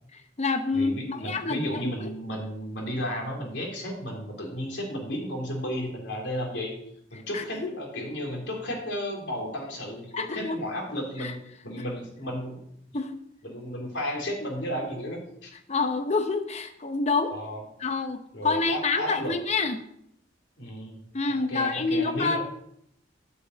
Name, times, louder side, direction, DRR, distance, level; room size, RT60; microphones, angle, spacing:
voice 1, 0.1-1.8 7.3-7.7 10.1-10.6 11.2-11.3 12.9-13.2 15.7-17.4 17.8-19.8 21.1-22.4, left 4 dB, 40° left, 8 dB, 0.8 m, -27 dB
voice 2, 0.7-6.7 7.1-12.6 13.4-15.5 17.3-17.6 18.3-19.3 20.6-21.0 21.3-22.4, equal, 75° left, -1 dB, 3.4 m, -33 dB
9.9 x 5.7 x 8.0 m, 0.72 s
head